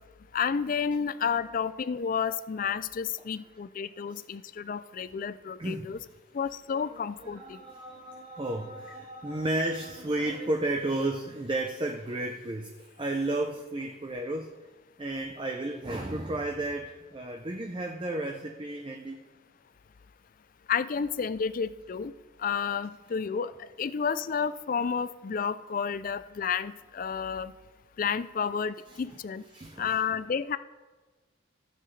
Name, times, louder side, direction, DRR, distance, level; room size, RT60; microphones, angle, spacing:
voice 1, 0.3-6.0 6.3-7.6 20.7-22.1 22.4-27.5 28.0-29.4 29.8-30.6, left 6 dB, 40° left, 15 dB, 0.3 m, -31 dB
voice 2, 5.6-6.0 7.2-14.5 15.0-19.2 28.9-29.0 29.5-30.0, right 2 dB, 25° right, 2 dB, 0.6 m, -33 dB
15.5 x 7.8 x 3.2 m, 1.2 s
head